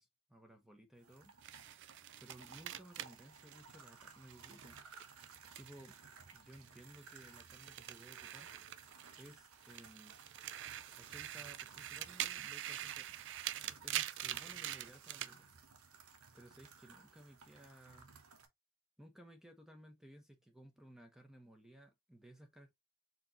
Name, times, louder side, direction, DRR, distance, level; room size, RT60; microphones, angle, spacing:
voice 1, 0.0-1.3 2.2-4.8 5.6-6.0 6.3-8.5 9.2-10.2 11.0-13.2 13.6-15.5 16.3-18.1 19.0-22.7, right 1 dB, ahead, 0.8 m, -58 dB
sound 1, 1.0-18.5, right 5 dB, 90° right, 1.1 m, -58 dB
sound 2, 1.4-6.0 6.3-9.3 9.6-15.3, right 12 dB, 55° right, 0.4 m, -45 dB
4.3 x 4.0 x 2.7 m
head